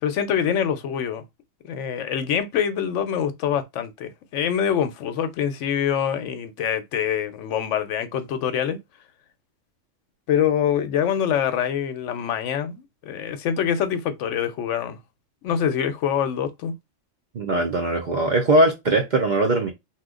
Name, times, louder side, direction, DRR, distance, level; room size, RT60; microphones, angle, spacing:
voice 1, 0.0-1.2 1.6-8.8 10.3-15.0 15.4-16.7, left 8 dB, 75° left, 0.9 m, -25 dB
voice 2, 17.3-19.7, right 2 dB, 55° right, 0.5 m, -20 dB
2.9 x 2.2 x 3.6 m
omnidirectional pair, 1.3 m